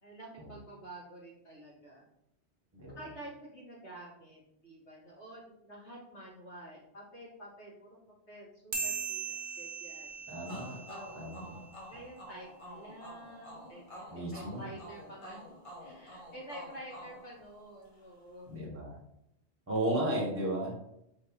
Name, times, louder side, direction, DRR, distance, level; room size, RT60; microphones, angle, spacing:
voice 1, 0.0-2.1 3.0-8.0 8.3-10.1 10.9-11.5 11.9-15.4 15.8-18.6, right 1 dB, 75° left, -5 dB, 1.9 m, -49 dB
sound 1, 8.7-11.6, right 4 dB, 50° right, 0.9 m, -39 dB
voice 2, 10.3-10.8 11.1-11.6 14.1-14.7 18.5-19.0 19.7-20.7, right 1 dB, 10° right, -2 dB, 1.0 m, -34 dB
sound 2, 10.5-18.0, equal, 30° left, 1.2 m, -49 dB
3.4 x 3.0 x 4.5 m, 0.78 s
omnidirectional pair, 1.2 m